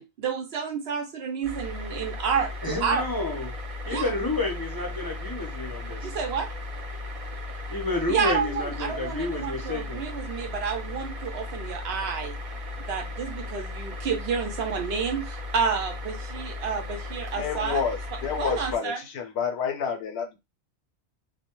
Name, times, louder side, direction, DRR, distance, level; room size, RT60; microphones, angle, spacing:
voice 1, 0.0-3.0 3.9-4.0 6.0-6.5 8.1-12.4 12.8-17.8 18.4-19.0, right 6 dB, 70° right, 0.8 m, -30 dB
sound 1, 1.4-18.8, left 2 dB, 55° right, 0.4 m, -36 dB
voice 2, 2.6-3.5 3.8-6.1 7.7-10.0, left 2 dB, 25° left, 0.6 m, -30 dB
voice 3, 17.4-20.4, left 6 dB, 75° left, 0.8 m, -29 dB
2.2 x 2.0 x 2.9 m
omnidirectional pair, 1.1 m